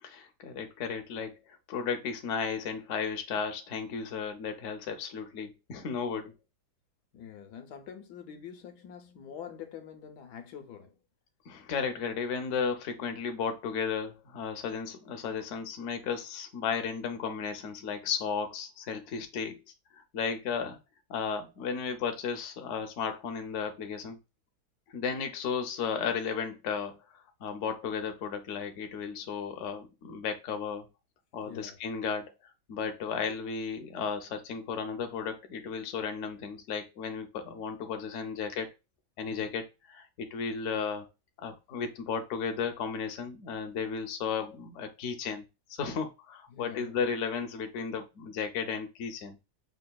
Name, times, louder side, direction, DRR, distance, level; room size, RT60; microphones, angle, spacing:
voice 1, 0.0-6.3 11.5-19.6 20.0-20.8 21.1-24.2 24.9-30.9 31.3-32.3 32.7-38.7 39.2-41.1 41.4-45.4 45.7-49.4, left 6 dB, 60° left, 0.8 m, -34 dB
voice 2, 7.1-11.0 31.4-31.8 39.3-39.5 46.5-47.1, left 8 dB, 80° left, 1.2 m, -45 dB
6.3 x 2.3 x 2.2 m
omnidirectional pair, 1.8 m